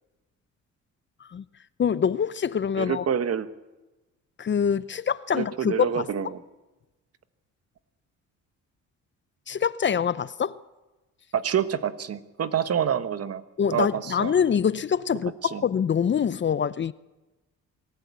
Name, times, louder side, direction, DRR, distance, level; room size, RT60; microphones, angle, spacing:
voice 1, 1.8-3.1 4.4-6.1 9.5-10.6 13.6-16.9, left 7 dB, 40° left, 0.7 m, -25 dB
voice 2, 2.8-3.5 5.3-6.4 11.3-13.4 13.7-14.3 15.5-15.6, right 8 dB, 55° right, 1.4 m, -27 dB
24.5 x 14.0 x 8.4 m
cardioid pair, 90°, 30 cm